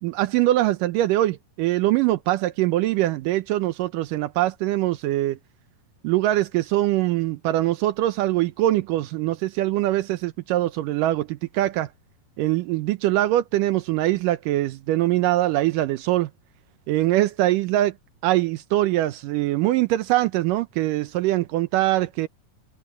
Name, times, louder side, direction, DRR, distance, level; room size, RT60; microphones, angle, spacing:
voice 1, 0.0-5.4 6.0-11.9 12.4-16.3 16.9-17.9 18.2-22.3, right 15 dB, 85° right, 2.4 m, -23 dB
omnidirectional pair, 3.8 m